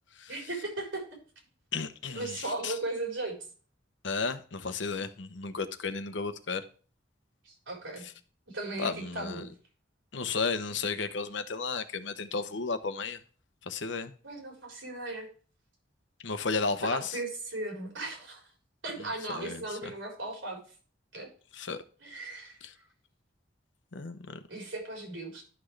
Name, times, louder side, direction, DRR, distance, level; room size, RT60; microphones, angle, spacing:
voice 1, 0.3-1.0 2.1-3.4 7.5-8.0 8.5-9.5 14.2-15.3 16.8-18.4 18.8-20.6 21.1-21.3 22.0-22.6 24.5-25.4, right 2 dB, 85° right, 4.2 m, -37 dB
voice 2, 1.7-2.8 4.0-6.6 8.8-9.5 10.1-13.2 13.6-14.1 16.2-17.2 19.0-19.9 21.5-21.8 22.6-22.7 23.9-24.4, left 4 dB, 70° left, 0.9 m, -33 dB
11.5 x 6.0 x 3.3 m
head